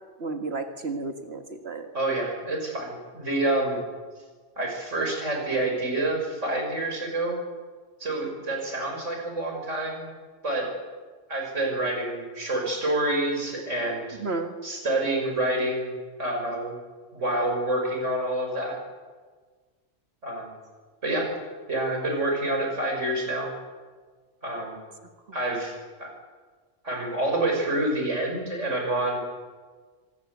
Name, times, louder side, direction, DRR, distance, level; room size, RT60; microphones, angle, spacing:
voice 1, 0.2-1.9 14.2-14.6, right 3 dB, 60° right, 5 dB, 1.9 m, -32 dB
voice 2, 1.9-3.8 4.6-7.4 8.0-10.1 10.4-10.7 11.3-14.2 14.6-16.7 17.1-18.8 20.2-20.5 21.0-21.3 21.7-23.5 24.4-24.8 25.3-25.7 26.0-26.1 26.8-29.2, right 1 dB, 90° right, 2 dB, 6.2 m, -27 dB
25.5 x 18.0 x 8.4 m, 1.5 s
omnidirectional pair, 1.2 m